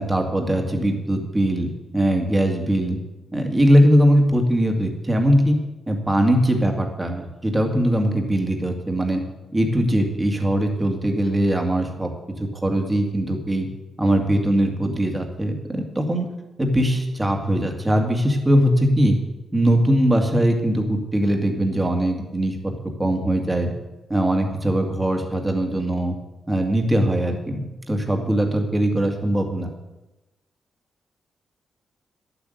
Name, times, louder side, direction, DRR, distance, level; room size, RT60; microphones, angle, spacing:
voice 1, 0.0-3.0 3.3-5.6 5.9-9.2 9.5-12.1 12.6-13.7 14.0-16.3 16.6-19.2 19.5-22.7 23.0-23.7 24.1-26.1 26.5-29.7, right 1 dB, 15° right, 3 dB, 2.0 m, -21 dB
11.0 x 8.2 x 7.9 m, 1.0 s
cardioid pair, 125°, 0 cm